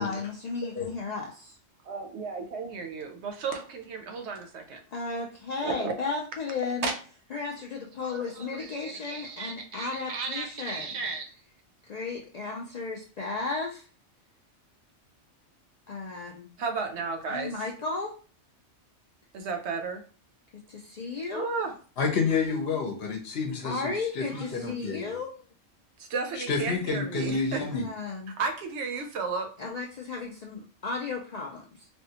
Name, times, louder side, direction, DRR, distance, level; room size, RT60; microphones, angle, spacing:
voice 1, 0.0-1.6 4.9-6.9 7.3-11.0 11.9-13.9 15.9-16.5 17.3-18.1 20.7-21.5 23.6-25.3 27.7-28.3 29.6-31.9, left 4 dB, 75° left, -1 dB, 0.3 m, -34 dB
voice 2, 1.8-4.8 5.6-6.0 6.8-6.9 8.0-11.3 16.6-17.5 19.3-20.0 21.3-21.7 26.0-27.6 28.3-29.5, right 4 dB, 65° right, 5 dB, 0.8 m, -34 dB
voice 3, 22.0-25.2 26.4-27.9, left 4 dB, 60° left, 2 dB, 0.9 m, -29 dB
3.4 x 2.2 x 2.8 m, 0.38 s
omnidirectional pair, 1.3 m